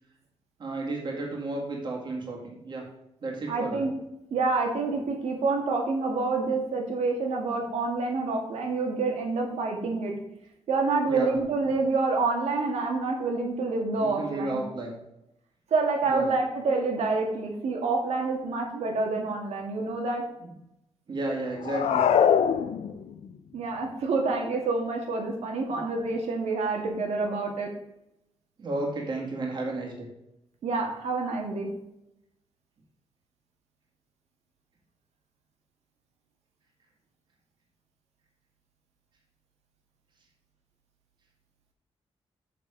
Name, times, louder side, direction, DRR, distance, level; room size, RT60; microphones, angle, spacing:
voice 1, 0.6-2.8 3.2-3.8 11.0-11.4 14.0-15.0 16.0-16.3 20.4-20.5 21.1-22.1 25.7-25.8 28.6-30.1, right 2 dB, 45° right, -2 dB, 2.1 m, -32 dB
voice 2, 3.5-3.9 4.3-10.1 10.7-14.6 15.7-20.2 23.5-27.7 30.6-31.7, right 3 dB, 90° right, 1 dB, 2.0 m, -27 dB
sound 1, 21.6-23.3, left 8 dB, 90° left, 0.6 m, -23 dB
6.9 x 6.7 x 5.2 m, 0.84 s
wide cardioid pair, 165°, 11 cm